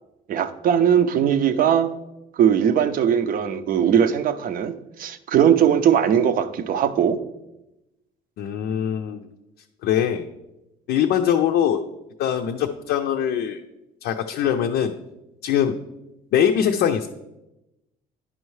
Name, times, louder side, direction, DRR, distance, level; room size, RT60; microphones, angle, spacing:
voice 1, 0.3-1.9 2.4-7.2, right 8 dB, 55° right, 11 dB, 0.6 m, -19 dB
voice 2, 8.4-9.2 9.8-10.3 10.9-11.8 12.2-13.6 14.0-14.9 15.4-15.8 16.3-17.1, left 9 dB, 75° left, 4 dB, 0.5 m, -22 dB
9.9 x 5.5 x 3.1 m, 0.94 s
cardioid pair, 110°, 17 cm